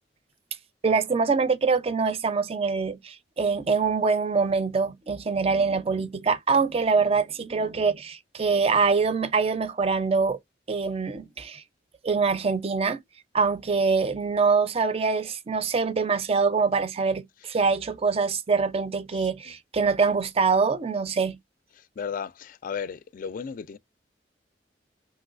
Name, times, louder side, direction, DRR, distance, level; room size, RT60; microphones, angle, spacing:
voice 1, 0.8-10.4 10.7-11.6 12.0-13.0 13.3-21.4, right 4 dB, 35° right, 0.5 m, -24 dB
voice 2, 22.0-23.8, left 6 dB, 50° left, 0.3 m, -34 dB
3.0 x 3.0 x 2.4 m
head